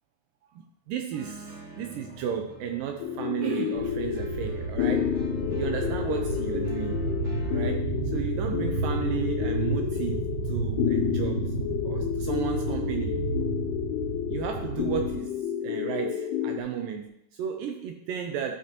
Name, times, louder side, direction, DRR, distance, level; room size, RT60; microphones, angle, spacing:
voice 1, 0.5-5.2 5.5-7.0 7.5-11.5 11.8-13.2 14.3-18.5, right 8 dB, 80° right, 4 dB, 2.0 m, -34 dB
sound 1, 1.1-7.7, right 1 dB, 50° right, 1.6 m, -46 dB
sound 2, 3.0-16.6, left 9 dB, 90° left, 2.7 m, -30 dB
sound 3, 3.8-15.1, right 2 dB, 35° right, 3.0 m, -31 dB
11.5 x 6.7 x 2.9 m, 0.74 s
omnidirectional pair, 4.4 m